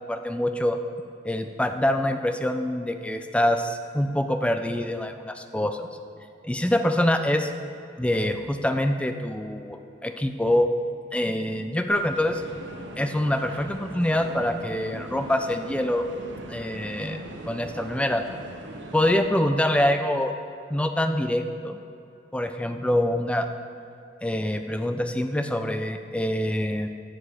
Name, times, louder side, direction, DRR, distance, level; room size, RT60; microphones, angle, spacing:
voice 1, 0.1-0.8 1.2-5.9 6.4-7.5 8.0-10.7 11.1-12.4 13.0-16.1 16.5-17.2 17.5-18.2 18.9-20.3 20.7-21.8 22.3-23.5 24.2-26.9, left 1 dB, 5° left, 7 dB, 0.4 m, -25 dB
sound 1, 11.9-19.2, right 2 dB, 85° right, 1.0 m, -40 dB
15.5 x 5.2 x 4.9 m, 2.6 s
head